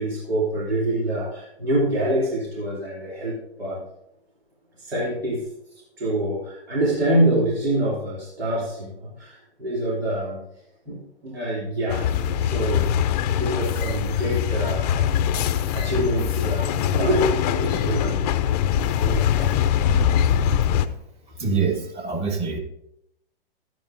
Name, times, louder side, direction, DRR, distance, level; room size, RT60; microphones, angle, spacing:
voice 1, 0.0-3.8 4.8-5.4 6.0-10.4 10.9-12.9 13.4-15.1 15.5-18.2 19.0-19.6 19.9-20.0, right 1 dB, 85° right, -6 dB, 2.9 m, -26 dB
sound 1, 11.9-20.9, left 9 dB, 40° left, 0.6 m, -22 dB
voice 2, 21.4-22.6, right 5 dB, 20° right, 4 dB, 1.3 m, -25 dB
12.0 x 9.2 x 2.6 m, 0.81 s
hypercardioid pair, 130°, 30 cm